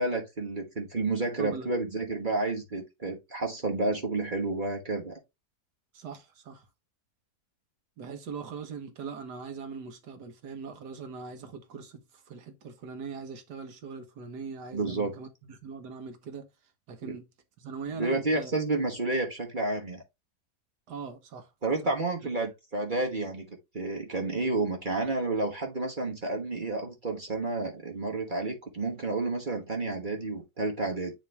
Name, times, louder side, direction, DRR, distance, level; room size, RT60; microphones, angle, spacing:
voice 1, 0.0-5.2 14.7-15.1 17.0-17.2 18.0-20.0 21.6-31.1, right 2 dB, 30° right, 1.3 m, -30 dB
voice 2, 1.4-1.7 5.9-6.7 8.0-16.5 16.9-17.3 17.6-18.5 20.9-21.5 21.8-21.9, right 5 dB, 85° right, 1.8 m, -41 dB
9.9 x 3.3 x 3.2 m
omnidirectional pair, 1.7 m